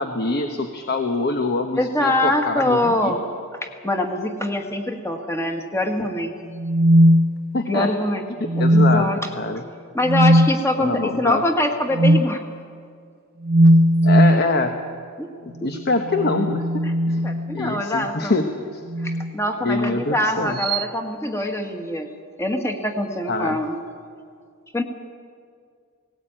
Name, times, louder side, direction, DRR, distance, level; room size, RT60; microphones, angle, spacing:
voice 1, 0.0-3.2 7.5-7.9 8.4-9.1 9.3-9.6 10.8-11.4 14.0-14.7 15.4-16.7 17.1-17.2 17.5-18.5 18.7-18.8 19.6-20.6 23.3-23.6, left 3 dB, 50° left, 5 dB, 1.0 m, -24 dB
voice 2, 1.8-3.2 3.6-6.3 7.7-8.2 8.6-9.3 9.9-12.4 15.2-15.3 17.2-18.3 19.0-22.1 22.4-23.8 24.7-24.8, left 1 dB, 15° left, 3 dB, 1.7 m, -24 dB
sound 1, 6.5-7.8 8.5-9.2 10.0-10.5 11.9-12.3 13.4-14.5 16.0-17.8 18.9-19.3 20.6-20.8, equal, 45° right, 0.8 m, -18 dB
18.5 x 17.5 x 8.8 m, 2.2 s
head